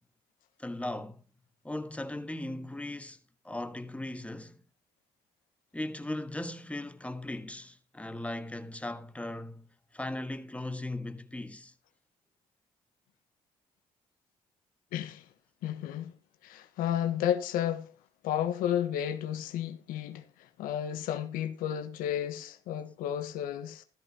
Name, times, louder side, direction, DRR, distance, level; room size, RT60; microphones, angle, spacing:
voice 1, 0.6-1.2 1.6-3.2 3.4-4.6 5.7-9.7 9.9-11.7, left 1 dB, 10° left, 1.5 m, -38 dB
voice 2, 14.9-15.3 15.6-16.1 16.4-17.9 18.2-23.8, left 10 dB, 80° left, 1.2 m, -32 dB
14.0 x 13.0 x 2.9 m
supercardioid pair, 55°, 14 cm